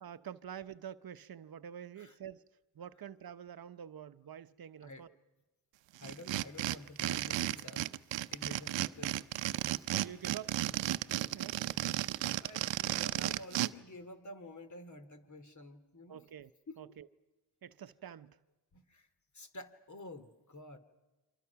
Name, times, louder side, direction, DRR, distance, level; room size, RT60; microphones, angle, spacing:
voice 1, 0.0-2.4 2.7-5.1 8.5-8.6 9.9-10.6 10.9-11.8 12.0-12.1 16.1-16.5 16.8-17.1 17.6-18.4, right 9 dB, 55° right, 0.9 m, -48 dB
voice 2, 6.0-8.0 8.3-9.7 11.7-11.9 12.3-16.3 16.7-16.8 18.7-19.1 19.3-20.8, left 1 dB, 40° left, 2.8 m, -50 dB
sound 1, 6.0-13.7, right 15 dB, 85° right, 0.7 m, -34 dB
29.5 x 24.5 x 5.9 m
cardioid pair, 55°, 43 cm